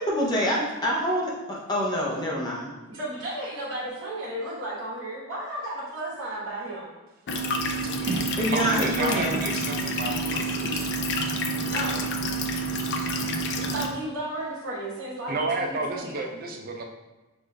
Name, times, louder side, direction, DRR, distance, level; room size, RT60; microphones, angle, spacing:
voice 1, 0.0-2.7 8.4-9.4, equal, 20° left, -3 dB, 0.7 m, -26 dB
voice 2, 2.9-6.9 11.7-12.1 13.5-16.1, right 1 dB, 60° right, -10 dB, 1.1 m, -34 dB
sound 1, 7.3-13.9, right 1 dB, 50° left, 0.4 m, -28 dB
voice 3, 7.9-11.3 15.3-16.8, right 2 dB, 40° right, 2 dB, 0.4 m, -31 dB
6.2 x 2.5 x 2.2 m, 1.1 s
head